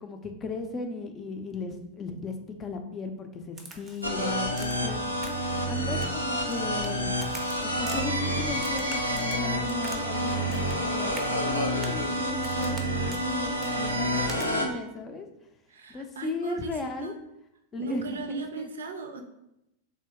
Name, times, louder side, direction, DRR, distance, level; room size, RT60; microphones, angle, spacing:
voice 1, 0.0-2.3 2.6-5.0 5.7-7.1 7.6-15.3 15.9-17.1 17.7-18.0 18.3-18.7, left 3 dB, 25° left, 5 dB, 0.5 m, -36 dB
Crack, 3.6-4.1 4.6-4.9 5.2-5.6 5.9-6.9 7.2-8.0 8.5-10.0 10.3-10.8 11.1-11.3 11.8-12.0 12.4-12.8 13.1-13.2 13.6-13.8 14.3-14.5, right 3 dB, 20° right, 0.6 m, -44 dB
sound 1, 4.0-14.6, equal, 85° left, 0.6 m, -29 dB
voice 2, 15.7-17.1 17.8-19.2, right 3 dB, 65° right, 6 dB, 0.5 m, -37 dB
3.3 x 2.8 x 3.5 m, 0.85 s
figure-of-eight pair, 90°, 0 cm